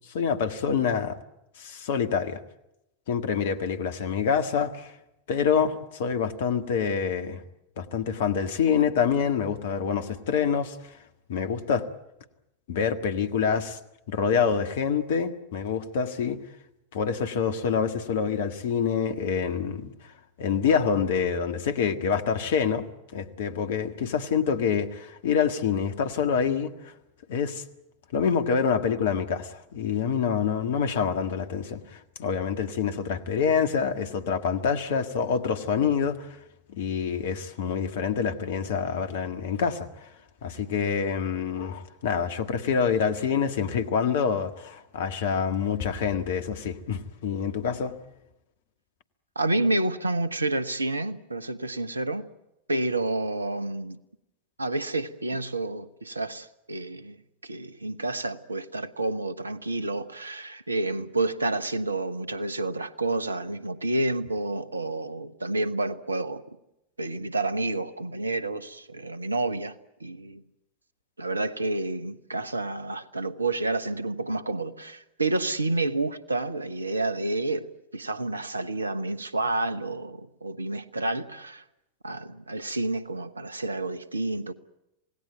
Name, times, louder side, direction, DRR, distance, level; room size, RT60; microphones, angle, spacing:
voice 1, 0.1-1.2 1.6-2.4 3.1-4.9 5.3-7.4 7.8-10.9 11.3-11.9 12.7-13.8 14.1-16.4 16.9-19.9 20.4-22.9 23.1-26.9 27.3-27.6 28.1-36.3 36.7-40.1 40.4-48.0, left 6 dB, 55° left, 1.7 m, -26 dB
voice 2, 49.3-52.3 52.7-54.0 54.6-57.2 57.4-66.4 67.0-70.4 71.2-81.6 82.0-84.5, right 2 dB, 80° right, 1.1 m, -29 dB
27.5 x 18.0 x 9.2 m
figure-of-eight pair, 90°, 0 cm